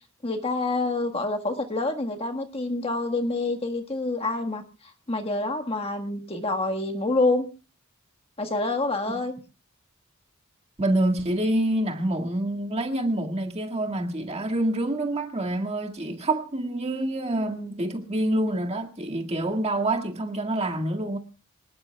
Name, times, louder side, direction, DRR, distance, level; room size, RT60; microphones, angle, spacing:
voice 1, 0.2-4.6 5.1-7.5 8.4-9.4, left 2 dB, 25° left, 1.5 m, -27 dB
voice 2, 10.8-21.2, right 1 dB, 30° right, 2.0 m, -27 dB
26.5 x 19.0 x 2.3 m
head